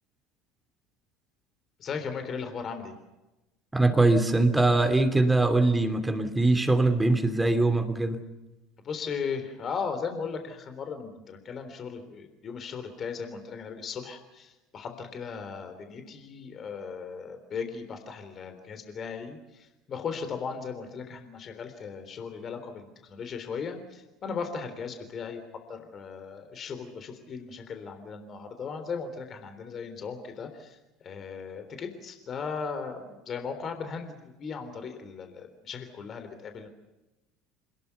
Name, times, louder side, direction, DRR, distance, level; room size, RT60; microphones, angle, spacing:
voice 1, 1.8-2.9 8.8-25.4 25.7-36.7, left 5 dB, 35° left, 7 dB, 3.5 m, -37 dB
voice 2, 3.7-8.2, right 2 dB, 10° right, 8 dB, 2.9 m, -22 dB
28.0 x 20.5 x 7.1 m, 1.0 s
figure-of-eight pair, 65°, 0 cm